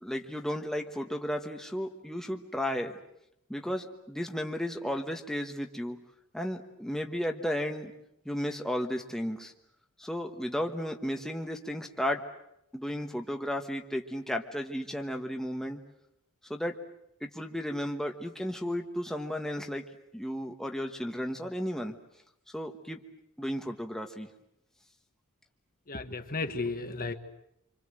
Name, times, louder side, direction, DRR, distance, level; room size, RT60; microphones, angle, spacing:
voice 1, 0.0-2.9 3.5-6.0 6.3-7.9 8.2-9.5 10.0-12.2 12.7-15.8 16.5-16.8 17.2-19.8 20.1-21.9 22.5-23.0 23.4-24.3, equal, ahead, 3 dB, 1.3 m, -34 dB
voice 2, 25.9-27.1, left 3 dB, 40° left, 7 dB, 1.6 m, -34 dB
26.5 x 26.0 x 7.7 m, 0.80 s
head